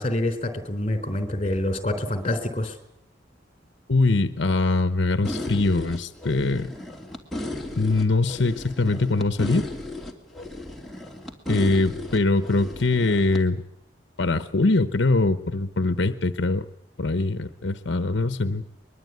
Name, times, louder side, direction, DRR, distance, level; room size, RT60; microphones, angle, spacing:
voice 1, 0.0-2.8, left 1 dB, 30° left, 8 dB, 3.9 m, -26 dB
voice 2, 3.9-6.7 7.8-9.7 11.5-13.6 14.2-16.6 17.0-18.6, left 2 dB, 75° left, 12 dB, 0.9 m, -22 dB
sound 1, 5.2-13.4, left 1 dB, ahead, 2.9 m, -35 dB
22.5 x 22.0 x 9.5 m, 0.77 s
head